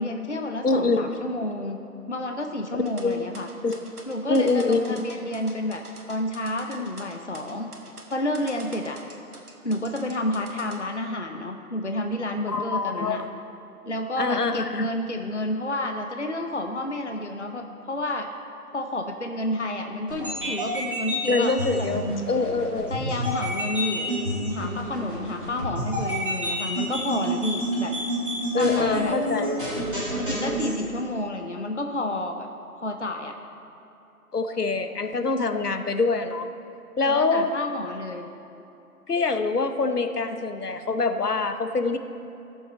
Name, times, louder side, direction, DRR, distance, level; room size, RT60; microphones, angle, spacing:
voice 1, 0.0-1.8 2.1-3.5 4.1-5.8 6.1-7.7 8.1-9.0 9.6-13.2 13.8-18.3 18.7-21.9 22.9-27.9 28.5-29.1 30.2-32.3 32.8-33.3 37.0-38.3, left 1 dB, 50° left, 5 dB, 0.6 m, -30 dB
voice 2, 0.6-1.1 2.7-3.3 3.6-3.8 4.3-5.0 12.5-13.3 14.2-14.9 21.3-22.9 28.5-29.6 34.3-36.5 37.0-37.5 39.1-42.0, left 3 dB, 75° left, 8 dB, 0.9 m, -25 dB
sound 1, 2.9-10.8, right 2 dB, 70° right, 1.7 m, -45 dB
sound 2, 20.1-30.8, equal, 35° right, 2.0 m, -29 dB
15.5 x 7.1 x 4.3 m, 2.9 s
figure-of-eight pair, 175°, 46 cm